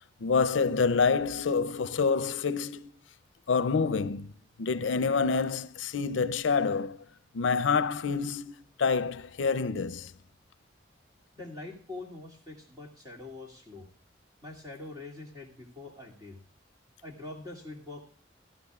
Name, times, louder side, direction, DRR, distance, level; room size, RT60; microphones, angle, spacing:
voice 1, 0.2-2.9 3.5-4.3 4.6-7.0 7.3-8.5 8.8-10.1, left 5 dB, 85° left, 0.5 m, -27 dB
voice 2, 11.3-13.9 14.4-16.4 17.0-18.0, left 2 dB, 20° right, 2.5 m, -44 dB
17.0 x 14.0 x 2.4 m
head